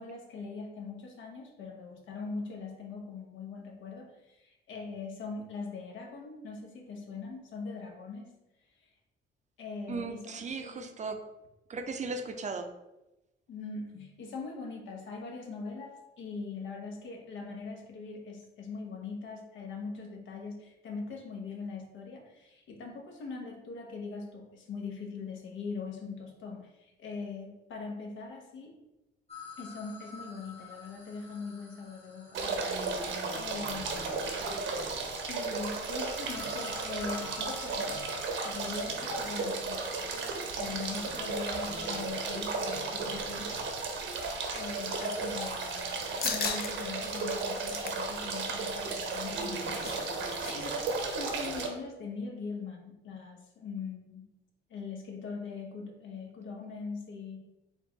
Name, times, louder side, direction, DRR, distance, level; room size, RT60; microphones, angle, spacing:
voice 1, 0.0-8.4 9.6-10.9 13.5-28.8 29.6-32.9 33.3-34.2 35.3-38.0 38.4-40.1 40.5-43.5 44.5-45.6 46.2-54.3 54.7-57.4, left 4 dB, 75° left, 2 dB, 0.9 m, -41 dB
voice 2, 9.9-11.2 11.7-12.7, right 4 dB, 35° right, 7 dB, 0.5 m, -37 dB
sound 1, 29.3-34.5 35.3-45.8, left 4 dB, 30° left, 1.1 m, -52 dB
sound 2, 32.3-51.7, right 3 dB, 75° right, 0.8 m, -34 dB
sound 3, 46.2-46.7 47.1-47.2 47.6-48.1 49.3-50.5 50.8-50.9 51.2-51.5, left 6 dB, 50° left, 0.5 m, -36 dB
4.4 x 2.4 x 3.9 m, 0.96 s
cardioid pair, 90°, 20 cm